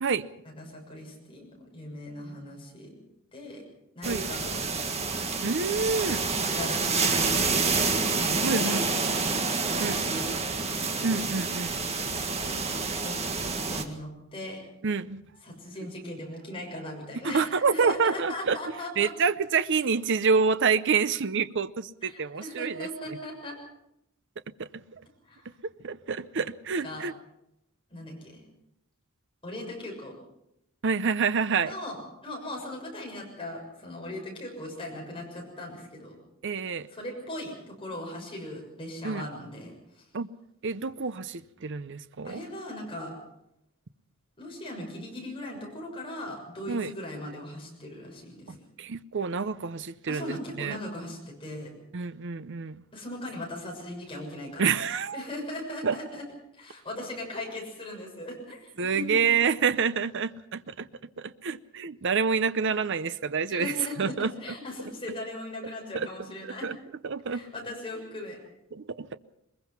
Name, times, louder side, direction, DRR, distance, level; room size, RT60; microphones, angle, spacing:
voice 1, 0.4-3.0 3.3-3.6 3.9-4.6 6.5-9.4 9.7-10.6 12.0-14.6 15.4-19.1 22.0-23.5 25.2-25.4 26.8-27.1 27.9-28.4 29.4-30.2 31.6-36.2 36.9-40.1 42.2-43.1 44.4-48.7 50.1-51.7 52.9-54.8 55.1-56.2 56.5-59.0 63.5-66.6 67.3-68.4, left 1 dB, 25° left, 6.6 m, -39 dB
sound 1, 4.0-13.8, right 4 dB, 30° right, 1.8 m, -28 dB
voice 2, 5.4-6.2 8.4-8.8 9.8-10.0 11.0-11.8 14.8-15.2 17.2-18.6 19.0-23.2 24.6-25.0 25.6-27.1 30.8-31.7 36.4-36.9 39.0-39.2 40.1-40.3 40.6-42.4 46.7-46.9 48.8-50.8 51.9-52.8 54.6-55.2 55.8-56.0 58.8-60.9 61.2-64.3 65.9-66.1 66.4-66.8 67.0-67.5 68.7-69.2, right 5 dB, 60° right, 0.7 m, -28 dB
22.0 x 21.5 x 5.9 m
head